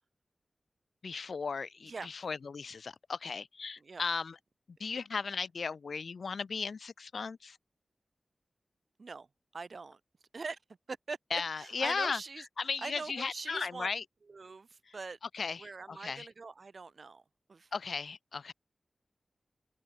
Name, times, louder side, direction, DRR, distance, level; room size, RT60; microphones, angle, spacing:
voice 1, 1.0-4.3 4.8-7.6 11.3-12.2 12.6-14.0 15.3-16.3 17.7-18.5, left 5 dB, 80° left, 1.2 m, -36 dB
voice 2, 9.5-10.0 10.3-10.6 10.9-13.9 14.2-17.7, right 4 dB, 70° right, 0.9 m, -43 dB
cardioid pair, 40°, 0 cm